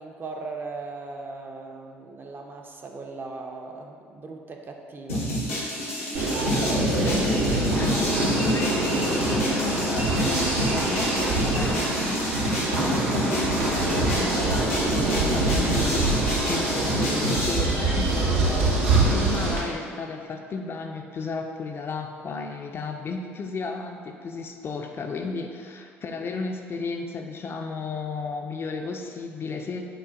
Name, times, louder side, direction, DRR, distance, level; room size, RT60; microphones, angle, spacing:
voice 1, 0.0-5.6 6.1-7.2, right 3 dB, 30° right, 2 dB, 0.4 m, -39 dB
sound 1, 5.1-17.6, equal, 85° left, 0.7 m, -28 dB
sound 2, 6.1-19.6, right 2 dB, 80° right, 0.6 m, -25 dB
voice 2, 7.0-18.7 19.0-29.8, left 4 dB, 35° left, 3 dB, 0.3 m, -33 dB
6.2 x 2.2 x 2.4 m, 2.3 s
figure-of-eight pair, 55°, 7 cm